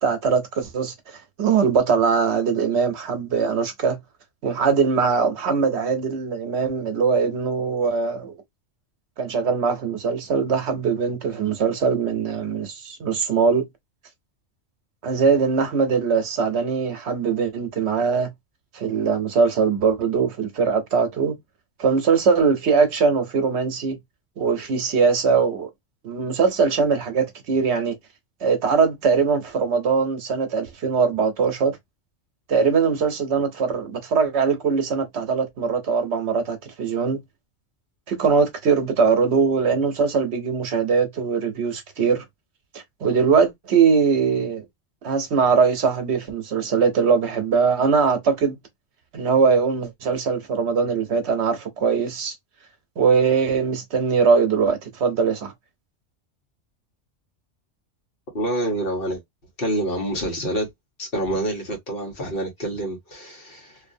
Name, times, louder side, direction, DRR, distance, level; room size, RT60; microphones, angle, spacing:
voice 1, 0.0-4.0 4.4-8.3 9.2-13.7 15.0-18.3 18.7-21.4 21.8-24.0 24.4-25.7 26.0-28.0 28.4-31.8 32.5-37.2 38.1-42.2 42.7-44.6 45.0-48.6 49.1-52.3 53.0-55.5, right 5 dB, 65° right, 1.0 m, -21 dB
voice 2, 58.3-59.2 59.6-60.7 61.0-63.8, right 1 dB, 50° left, 1.3 m, -27 dB
2.7 x 2.5 x 2.5 m
omnidirectional pair, 1.2 m